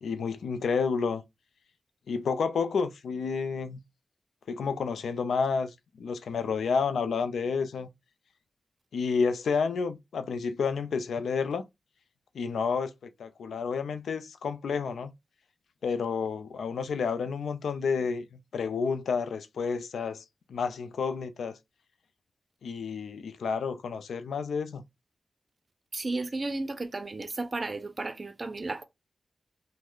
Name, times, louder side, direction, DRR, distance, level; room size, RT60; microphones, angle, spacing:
voice 1, 0.0-1.2 2.1-3.8 4.5-5.7 6.0-7.9 8.9-11.6 12.3-15.1 15.8-20.2 20.5-21.6 22.6-24.8, left 5 dB, 85° left, 0.4 m, -30 dB
voice 2, 25.9-28.8, right 2 dB, 45° right, 0.5 m, -33 dB
3.1 x 2.1 x 3.6 m
cardioid pair, 45°, 0 cm